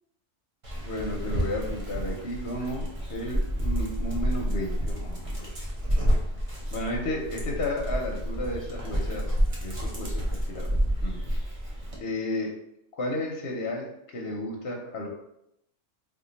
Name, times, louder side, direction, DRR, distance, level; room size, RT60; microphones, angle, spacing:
Dog, 0.6-12.0, equal, 35° right, 0.7 m, -29 dB
voice 1, 0.8-5.6 6.7-9.3 9.6-10.7 11.0-11.2 12.0-12.5 12.9-15.1, left 1 dB, 60° left, -1 dB, 0.8 m, -33 dB
2.9 x 2.4 x 3.9 m, 0.79 s
omnidirectional pair, 1.3 m